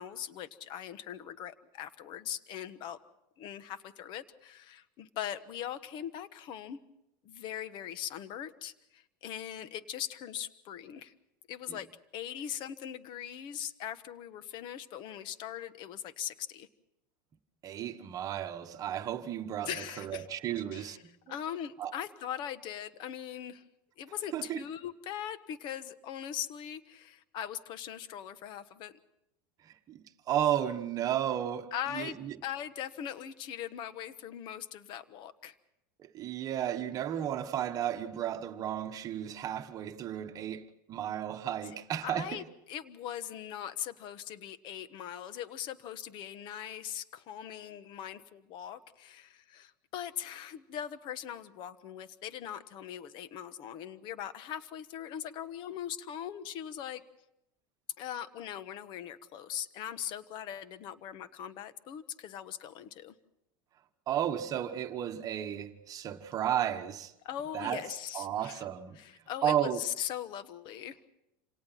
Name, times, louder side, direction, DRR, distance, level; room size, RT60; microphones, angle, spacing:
voice 1, 0.0-3.0 3.4-6.8 7.2-11.1 11.5-11.9 12.1-16.7 19.7-20.3 20.7-21.0 21.3-23.6 24.0-28.9 31.7-32.2 32.4-35.5 42.0-57.0 58.0-63.1 67.2-68.6 68.9-71.0, left 10 dB, 45° left, 1.2 m, -40 dB
voice 2, 17.6-21.1 21.8-21.9 24.3-24.6 29.6-32.4 36.0-42.4 64.1-67.1 67.5-67.9 68.1-69.0 69.4-69.8, right 10 dB, 35° right, 1.3 m, -33 dB
27.5 x 18.0 x 5.8 m
supercardioid pair, 140°, 11 cm